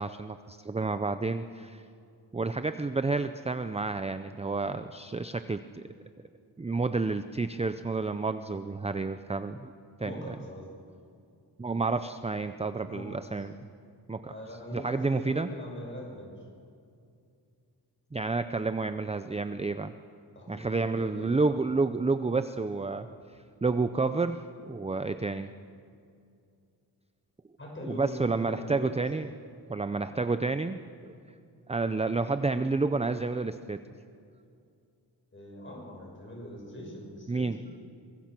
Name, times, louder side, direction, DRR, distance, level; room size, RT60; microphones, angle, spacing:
voice 1, 0.0-1.8 2.3-5.8 6.6-9.7 10.0-10.3 11.6-13.5 14.1-14.3 14.7-15.5 18.1-19.9 20.5-23.1 23.6-25.5 27.9-29.3 29.7-31.1 31.7-33.8 37.3-37.6, right 3 dB, 15° right, 10 dB, 0.5 m, -30 dB
voice 2, 10.0-10.7 12.9-13.2 14.3-16.3 20.3-21.3 27.6-28.9 35.3-37.5, equal, 25° left, -1 dB, 6.1 m, -42 dB
24.0 x 21.5 x 6.0 m, 2.4 s
wide cardioid pair, 135°, 42 cm